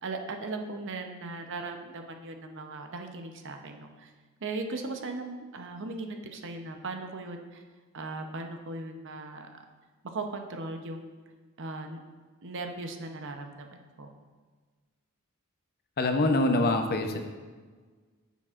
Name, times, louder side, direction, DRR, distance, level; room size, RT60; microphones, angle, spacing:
voice 1, 0.0-4.1 4.4-7.6 7.9-9.5 10.0-11.1 11.6-12.0 12.4-14.1, right 3 dB, 55° right, 5 dB, 0.7 m, -38 dB
voice 2, 16.0-17.2, left 2 dB, 45° left, 5 dB, 0.7 m, -25 dB
10.0 x 7.1 x 2.5 m, 1.4 s
head